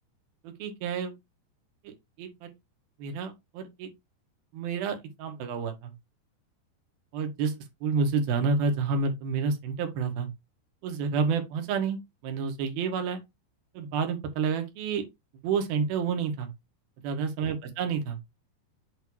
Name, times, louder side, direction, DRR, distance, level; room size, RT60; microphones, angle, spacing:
voice 1, 0.4-1.1 1.8-2.5 3.0-3.9 4.5-5.9 7.1-10.3 10.8-13.2 13.7-15.0 15.4-16.5 17.0-18.2, right 5 dB, 65° right, 3.0 m, -29 dB
8.5 x 3.0 x 4.7 m
omnidirectional pair, 4.9 m